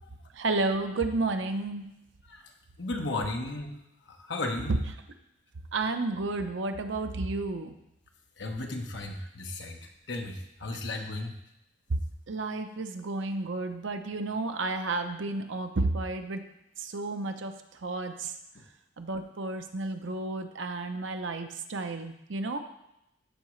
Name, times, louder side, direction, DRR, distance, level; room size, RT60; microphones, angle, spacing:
voice 1, 0.3-1.9 4.7-4.8 5.7-7.7 11.9-12.0 12.3-16.4 16.8-18.4 19.0-22.6, right 2 dB, 75° right, 7 dB, 0.7 m, -31 dB
voice 2, 2.8-3.8 4.1-4.7 8.4-11.3, left 2 dB, 65° left, 2 dB, 1.1 m, -35 dB
13.5 x 4.8 x 3.2 m, 0.84 s
head